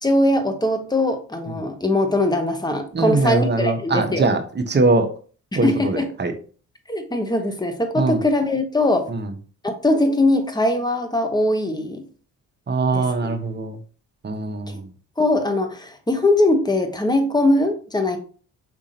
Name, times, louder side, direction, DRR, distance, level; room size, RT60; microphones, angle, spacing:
voice 1, 0.0-4.3 5.5-6.1 6.9-9.1 9.6-12.0 12.9-13.3 14.7-14.8 15.2-18.2, left 1 dB, 10° left, 7 dB, 1.0 m, -21 dB
voice 2, 2.9-5.1 5.6-6.3 7.9-8.2 9.1-9.3 12.7-13.8 14.2-14.9, right 3 dB, 30° right, 6 dB, 0.9 m, -22 dB
5.1 x 3.6 x 2.8 m, 0.39 s
supercardioid pair, 65°, 35 cm